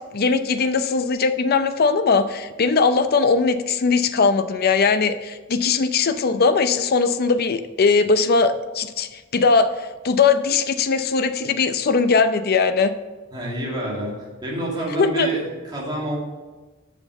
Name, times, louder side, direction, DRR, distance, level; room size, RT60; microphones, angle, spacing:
voice 1, 0.1-12.9 15.0-15.3, left 4 dB, 50° left, 10 dB, 0.5 m, -20 dB
voice 2, 13.3-14.1 14.4-16.2, right 1 dB, 20° right, -5 dB, 2.4 m, -27 dB
7.1 x 6.0 x 6.9 m, 1.3 s
head